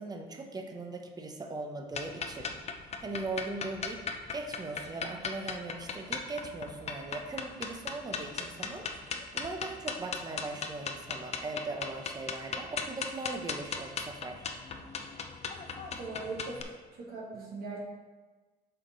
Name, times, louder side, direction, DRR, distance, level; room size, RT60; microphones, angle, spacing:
voice 1, 0.0-2.6 3.0-8.9 9.3-14.5, right 2 dB, 25° right, 4 dB, 0.9 m, -39 dB
sound 1, 1.9-16.6, left 5 dB, 40° left, 0.7 m, -38 dB
voice 2, 15.9-16.6 16.9-17.8, right 3 dB, 60° right, -4 dB, 2.4 m, -40 dB
7.7 x 5.0 x 4.0 m, 1.3 s
cardioid pair, 110°, 17 cm